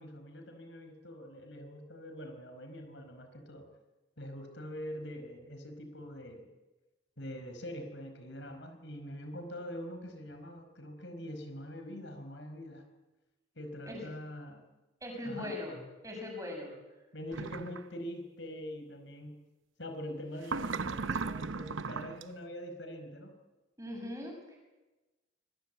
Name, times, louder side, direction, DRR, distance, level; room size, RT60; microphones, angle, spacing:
voice 1, 0.0-3.7 4.2-6.5 7.2-12.9 13.5-14.6 15.2-15.6 17.1-19.4 19.8-23.3, equal, 65° left, 7 dB, 4.9 m, -44 dB
voice 2, 15.0-15.7 16.0-16.7 23.8-24.6, left 1 dB, 15° right, 2 dB, 7.2 m, -40 dB
sound 1, 17.3-17.8 20.4-22.2, right 4 dB, 85° right, 0.9 m, -36 dB
25.5 x 21.5 x 8.3 m, 1.1 s
head